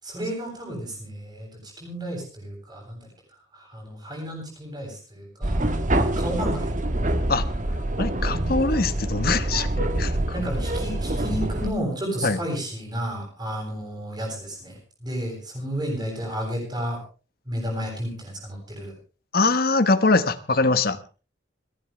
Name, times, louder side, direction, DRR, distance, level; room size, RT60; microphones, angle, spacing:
voice 1, 0.0-3.1 3.5-5.7 6.2-6.7 10.3-17.0 17.5-18.9, equal, 20° right, -1 dB, 7.4 m, -32 dB
sound 1, 5.4-11.7, right 1 dB, 40° right, 1.6 m, -25 dB
voice 2, 8.0-10.2 12.2-12.4 19.3-21.0, left 3 dB, 50° left, 13 dB, 1.2 m, -22 dB
29.0 x 11.0 x 3.4 m, 0.33 s
head